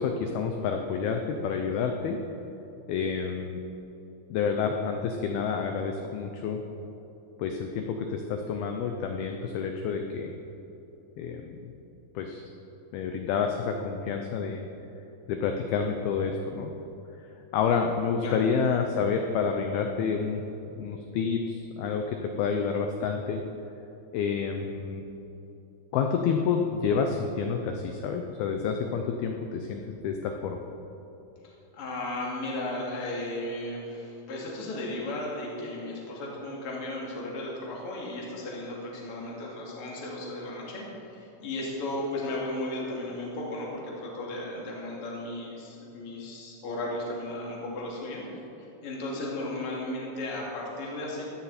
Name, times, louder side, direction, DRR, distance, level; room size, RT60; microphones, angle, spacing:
voice 1, 0.0-2.2 2.9-3.6 4.3-6.6 7.4-10.4 11.2-11.7 12.2-12.4 12.9-14.7 15.3-16.7 17.5-20.4 20.8-23.4 24.1-25.1 25.9-30.6, left 6 dB, 85° left, 4 dB, 2.2 m, -29 dB
voice 2, 31.4-48.2 48.6-51.3, left 1 dB, 35° left, -4 dB, 2.8 m, -35 dB
16.5 x 13.0 x 4.3 m, 3.0 s
omnidirectional pair, 5.4 m